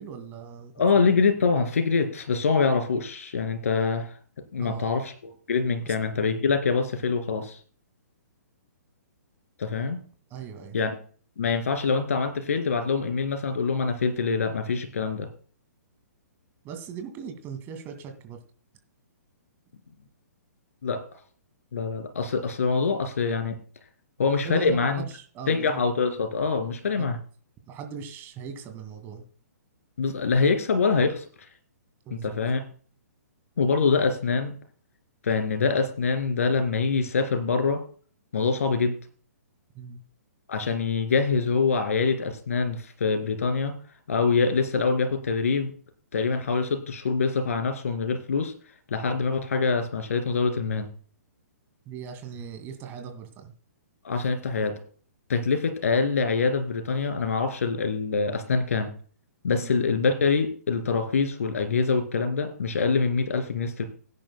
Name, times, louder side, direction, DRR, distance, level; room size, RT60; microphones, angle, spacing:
voice 1, 0.0-1.0 4.6-4.9 5.9-6.0 10.3-10.8 16.6-18.4 24.4-25.8 27.0-27.1 27.7-29.3 32.1-32.3 39.7-40.0 51.9-53.5 59.6-59.7, right 7 dB, 25° right, 7 dB, 2.1 m, -39 dB
voice 2, 0.8-4.1 4.5-7.6 9.6-10.0 10.7-10.9 11.4-15.3 20.8-21.0 21.7-23.6 24.2-25.0 25.5-27.2 30.0-31.3 32.1-32.6 33.6-34.5 35.2-37.8 38.3-39.0 40.5-43.7 44.1-45.7 46.1-48.5 48.9-50.9 54.0-54.7 55.3-58.9 59.4-63.8, left 4 dB, 60° left, 8 dB, 2.5 m, -25 dB
17.0 x 10.0 x 2.2 m, 0.42 s
figure-of-eight pair, 125°, 9 cm